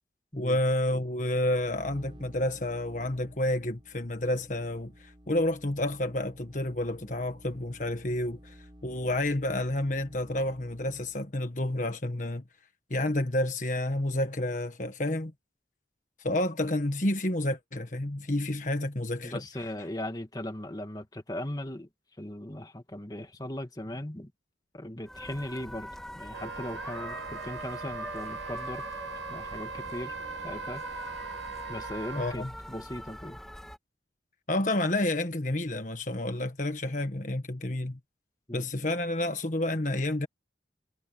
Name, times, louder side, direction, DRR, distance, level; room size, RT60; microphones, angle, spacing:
voice 1, 0.4-12.4 12.9-15.3 16.2-19.4 32.1-32.5 34.5-38.0 38.5-40.3, left 1 dB, 45° left, 1.5 m, -30 dB
sound 1, 1.4-11.3, equal, 25° right, 4.7 m, -53 dB
voice 2, 19.2-21.9 22.2-24.3 24.7-25.9 26.2-28.9 29.3-30.1 30.4-30.8 31.7-33.4 38.5-38.6, left 1 dB, 20° left, 1.8 m, -38 dB
sound 2, 25.0-33.8, equal, 5° left, 1.8 m, -42 dB
Wind instrument woodwind instrument, 26.3-32.4, right 5 dB, 85° right, 0.7 m, -40 dB
head